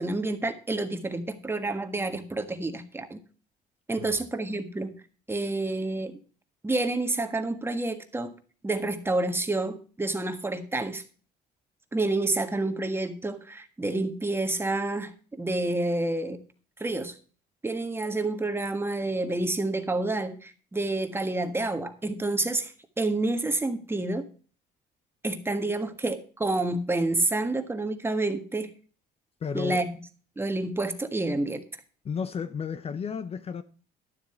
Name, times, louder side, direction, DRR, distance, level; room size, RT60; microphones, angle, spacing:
voice 1, 0.0-3.2 3.9-4.9 5.3-6.2 6.6-8.3 8.6-11.0 11.9-16.4 16.8-17.1 17.6-24.3 25.2-28.7 29.5-29.9 30.4-31.6, right 2 dB, 15° right, 1.5 m, -29 dB
voice 2, 29.4-29.9 32.0-33.6, left 6 dB, 35° left, 0.7 m, -33 dB
12.0 x 7.2 x 4.4 m
cardioid pair, 110°, 17 cm